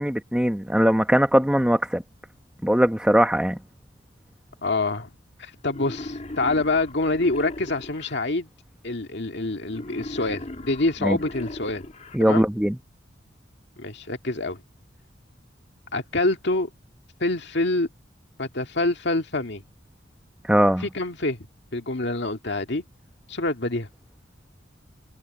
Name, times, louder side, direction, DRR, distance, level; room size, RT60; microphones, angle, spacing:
voice 1, 0.0-2.0 2.6-3.6 11.0-11.2 12.1-12.8 20.5-20.8, equal, 5° right, 0.9 m, -20 dB
voice 2, 4.6-5.1 5.4-8.5 8.8-11.9 12.2-12.5 13.8-14.6 15.9-16.7 17.2-17.9 18.4-19.6 20.8-21.4 21.7-22.8 23.3-23.9, left 2 dB, 65° left, 2.2 m, -26 dB
Wild animals, 5.7-8.2 9.7-12.2, left 1 dB, 40° left, 2.1 m, -38 dB
head